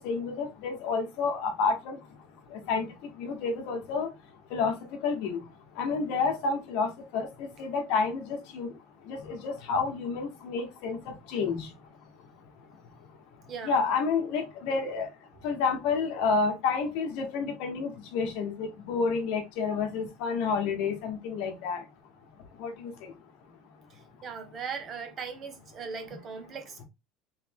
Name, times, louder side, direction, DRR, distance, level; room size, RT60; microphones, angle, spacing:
voice 1, 0.0-2.0 2.5-2.9 3.2-4.1 4.5-4.8 5.0-5.4 5.8-8.7 9.1-11.7 13.6-15.1 15.4-21.8 22.6-23.1, left 4 dB, 65° left, 1.2 m, -29 dB
voice 2, 13.5-13.9 23.9-26.8, right 6 dB, 30° right, 0.7 m, -39 dB
3.3 x 3.2 x 3.4 m
cardioid pair, 165°, 0 cm